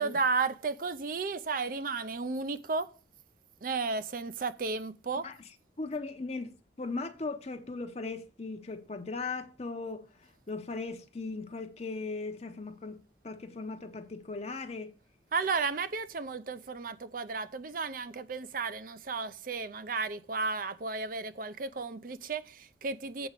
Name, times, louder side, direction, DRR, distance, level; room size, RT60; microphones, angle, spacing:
voice 1, 0.0-2.9 3.6-5.3 15.3-23.3, right 4 dB, 50° right, 0.6 m, -33 dB
voice 2, 5.8-14.9, left 3 dB, 35° left, 0.7 m, -38 dB
7.9 x 5.0 x 7.3 m
head